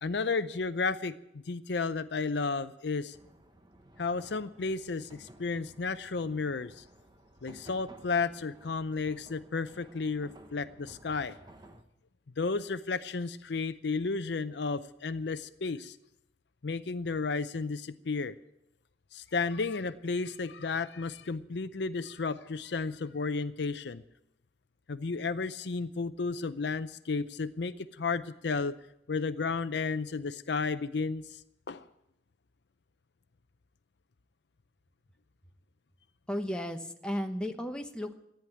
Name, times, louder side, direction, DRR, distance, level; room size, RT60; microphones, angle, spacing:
voice 1, 0.0-3.2 4.0-6.8 7.4-11.4 12.4-16.0 16.6-18.3 19.1-24.0 24.9-28.8 29.1-31.4 31.7-31.8, left 4 dB, 65° left, 13 dB, 0.6 m, -33 dB
sound 1, 3.1-11.8, right 1 dB, 25° right, 1.1 m, -55 dB
voice 2, 36.3-38.1, equal, 5° left, 4 dB, 1.0 m, -34 dB
14.5 x 10.0 x 9.2 m, 0.83 s
head